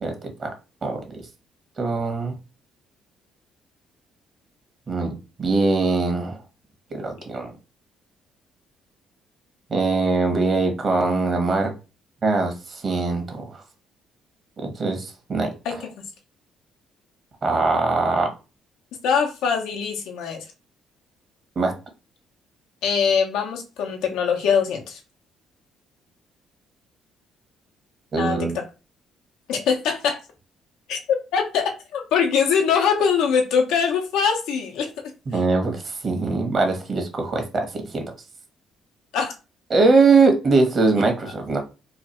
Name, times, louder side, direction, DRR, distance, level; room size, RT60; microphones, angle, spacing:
voice 1, 0.0-0.5 0.8-1.3 1.8-2.3 4.9-6.4 6.9-7.5 9.7-11.7 12.2-13.6 14.6-15.5 17.4-18.3 21.5-21.7 28.1-28.6 35.3-38.0 39.7-41.6, right 3 dB, 45° right, 5 dB, 1.2 m, -22 dB
voice 2, 19.0-20.4 22.8-25.0 28.2-28.6 29.5-30.2 30.9-34.9 39.1-39.3, left 6 dB, 80° left, 2 dB, 0.9 m, -22 dB
3.2 x 2.4 x 4.2 m, 0.31 s
supercardioid pair, 80°, 0 cm